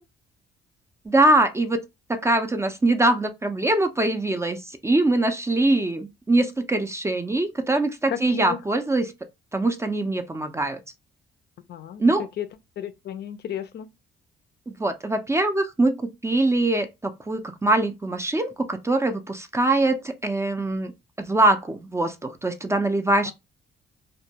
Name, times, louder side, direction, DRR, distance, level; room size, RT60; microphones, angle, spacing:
voice 1, 1.1-1.8 2.1-9.1 9.5-10.8 12.0-12.3 14.7-20.9 21.2-23.3, right 2 dB, 15° right, 0.3 m, -23 dB
voice 2, 8.1-8.6 11.7-12.0 12.4-12.5 12.8-13.9 23.3-23.4, left 10 dB, 55° left, 0.4 m, -33 dB
2.2 x 2.1 x 2.7 m
cardioid pair, 90°, 20 cm